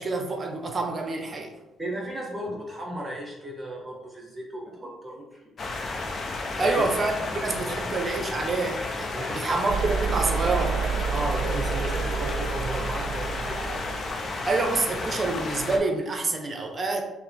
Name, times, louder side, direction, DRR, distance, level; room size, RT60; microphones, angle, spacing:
voice 1, 0.0-1.5 6.6-10.8 14.5-17.0, right 3 dB, 40° right, 4 dB, 0.6 m, -27 dB
voice 2, 1.8-5.4 6.5-6.8 9.1-9.5 11.1-13.9, right 1 dB, 15° right, -2 dB, 1.1 m, -34 dB
sound 1, 5.6-15.8, left 3 dB, 50° left, 0.6 m, -32 dB
sound 2, 9.7-14.2, right 6 dB, 80° right, 0.4 m, -29 dB
5.6 x 2.1 x 3.4 m, 1.0 s
cardioid pair, 80°, 0 cm